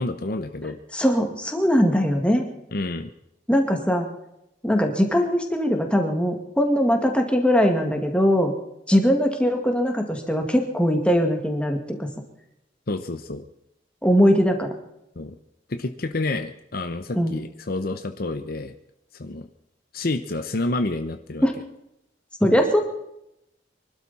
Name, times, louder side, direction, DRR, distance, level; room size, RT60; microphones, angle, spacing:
voice 1, 0.0-0.8 2.7-3.1 12.9-13.4 15.2-15.4 15.7-18.7 19.2-19.5 19.9-21.4, left 2 dB, 50° left, 8 dB, 0.8 m, -29 dB
voice 2, 0.9-2.4 3.5-4.1 4.6-8.5 8.9-12.1 14.0-14.7 17.2-17.4 21.4-21.5 22.4-22.8, equal, 5° left, 3 dB, 2.0 m, -21 dB
24.0 x 12.5 x 4.2 m, 0.83 s
head